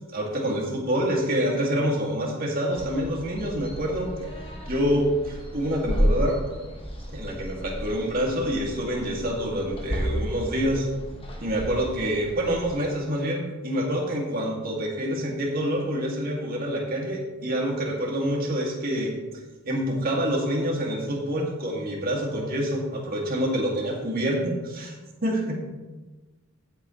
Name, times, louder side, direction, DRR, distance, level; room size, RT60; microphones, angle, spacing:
voice 1, 0.1-4.1 4.7-6.4 7.1-10.9 11.4-19.1 19.7-24.4 24.7-24.9 25.2-25.7, equal, 45° right, -1 dB, 2.5 m, -27 dB
sound 1, 2.7-12.7, equal, 25° left, 1.6 m, -32 dB
15.0 x 7.8 x 3.3 m, 1.2 s
head